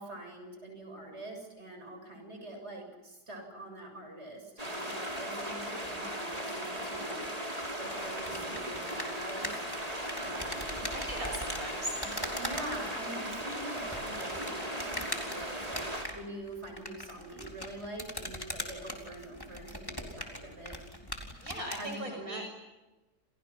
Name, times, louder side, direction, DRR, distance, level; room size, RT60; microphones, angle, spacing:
voice 1, 0.0-7.3 7.8-9.6 10.2-10.8 12.4-20.8 21.8-22.4, right 1 dB, 40° right, 3 dB, 7.6 m, -44 dB
sound 1, 4.6-16.0, equal, 20° right, 5.6 m, -37 dB
sound 2, 7.8-21.9, left 1 dB, 15° left, 4.1 m, -42 dB
voice 2, 10.9-12.3 21.4-22.4, right 1 dB, 55° right, 2 dB, 7.0 m, -39 dB
29.5 x 29.5 x 6.1 m, 1.1 s
omnidirectional pair, 1.8 m